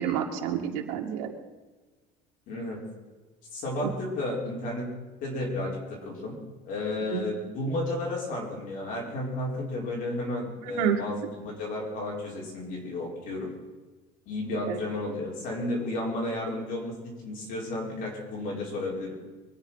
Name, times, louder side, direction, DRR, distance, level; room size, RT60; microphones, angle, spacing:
voice 1, 0.0-1.3 3.8-3.9 7.1-7.4 10.6-11.0 14.7-14.8, right 9 dB, 80° right, 1 dB, 2.3 m, -29 dB
voice 2, 2.5-2.8 3.5-4.9 5.2-6.4 6.6-13.5 14.3-19.2, left 1 dB, 45° left, -2 dB, 4.9 m, -32 dB
24.5 x 9.5 x 5.7 m, 1.3 s
cardioid pair, 165°, 19 cm